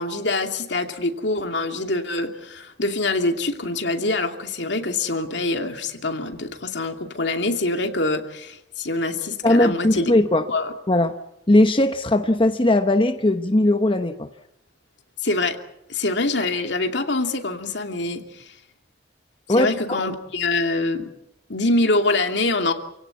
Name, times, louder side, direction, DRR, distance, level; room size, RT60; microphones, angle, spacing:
voice 1, 0.0-10.1 10.5-10.7 15.2-15.6 15.9-18.5 19.5-21.1 21.5-22.7, left 2 dB, 70° left, 5 dB, 2.6 m, -25 dB
voice 2, 9.4-10.5 10.9-11.1 11.5-14.3 19.5-20.0, left 1 dB, 30° left, 7 dB, 0.9 m, -19 dB
29.0 x 17.0 x 8.4 m, 0.86 s
head